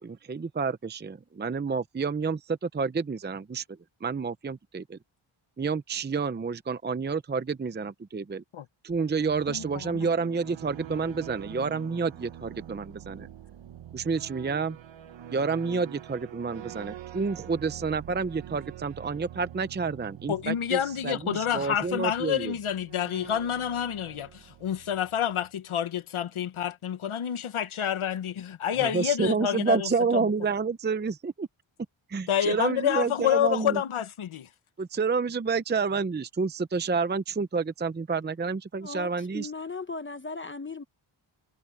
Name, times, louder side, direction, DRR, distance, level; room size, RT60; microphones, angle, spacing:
voice 1, 0.0-5.0 5.6-8.4 8.8-13.3 13.9-14.8 15.3-22.5 28.8-31.5 32.1-33.8 34.8-39.5, right 5 dB, 20° right, 0.6 m, -29 dB
sound 1, 8.9-25.5, right 11 dB, 65° right, 0.9 m, -45 dB
voice 2, 9.5-10.1 20.3-30.2 32.3-34.5, left 10 dB, 80° left, 1.4 m, -28 dB
voice 3, 38.8-40.8, left 4 dB, 25° left, 1.0 m, -37 dB
wide cardioid pair, 125°, 49 cm